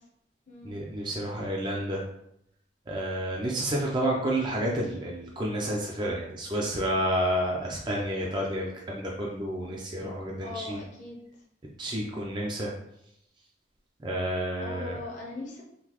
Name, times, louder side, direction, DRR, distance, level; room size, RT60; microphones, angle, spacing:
voice 1, 0.6-2.0 2.9-10.8 11.8-12.7 14.0-15.0, right 1 dB, 25° right, -2 dB, 0.4 m, -30 dB
voice 2, 10.4-11.2 14.6-15.6, left 2 dB, 40° left, -3 dB, 0.7 m, -39 dB
3.8 x 2.7 x 2.9 m, 0.77 s
head